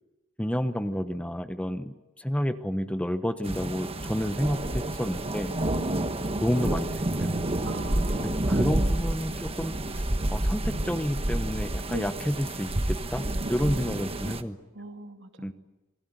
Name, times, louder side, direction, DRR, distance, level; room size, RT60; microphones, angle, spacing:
voice 1, 0.4-5.5 6.4-7.4 8.2-14.6 15.4-15.5, equal, 5° left, 9 dB, 0.9 m, -30 dB
sound 1, 3.4-14.4, right 1 dB, 30° right, 1.3 m, -29 dB
voice 2, 5.6-6.2 7.6-8.4 11.9-12.1 13.4-13.5 13.9-14.5 14.7-15.5, right 2 dB, 60° right, 5 dB, 2.5 m, -40 dB
27.0 x 20.5 x 9.2 m, 1.1 s
head